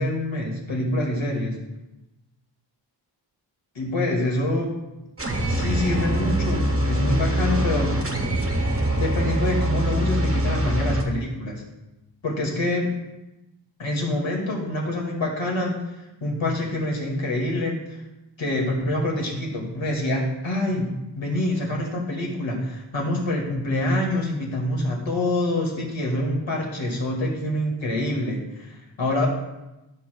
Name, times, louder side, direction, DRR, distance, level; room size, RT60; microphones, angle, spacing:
voice 1, 0.0-1.6 3.8-4.8 5.4-7.9 8.9-11.6 12.2-12.9 13.8-18.0 18.4-20.9 21.2-29.3, left 1 dB, 85° left, -1 dB, 2.1 m, -26 dB
sound 1, 5.2-11.0, right 1 dB, 30° right, 1.2 m, -23 dB
13.0 x 7.0 x 2.3 m, 0.98 s
wide cardioid pair, 100°, 45 cm